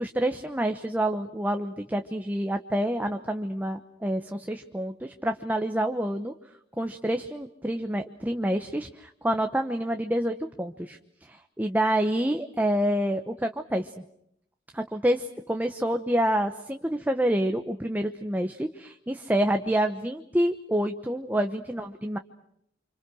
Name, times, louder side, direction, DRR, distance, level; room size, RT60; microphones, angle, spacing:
voice 1, 0.0-6.3 6.8-14.0 14.7-22.2, right 1 dB, 10° right, 5 dB, 1.0 m, -28 dB
29.5 x 26.5 x 6.3 m, 0.74 s
head